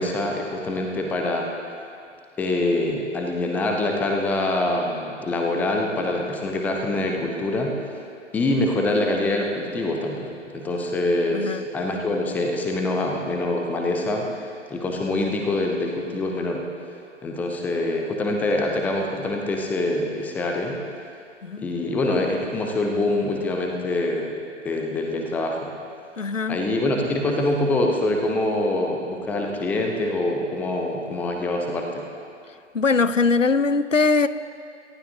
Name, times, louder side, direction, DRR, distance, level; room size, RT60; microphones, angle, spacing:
voice 1, 0.0-1.5 2.4-7.7 8.3-16.6 17.2-20.8 21.6-24.3 24.6-25.7 26.5-32.0, left 2 dB, 5° left, 2 dB, 0.7 m, -25 dB
voice 2, 11.3-11.6 21.4-21.6 26.2-26.6 32.7-34.3, left 4 dB, 85° left, 14 dB, 0.7 m, -21 dB
27.5 x 15.0 x 2.8 m, 2.4 s
figure-of-eight pair, 130°, 37 cm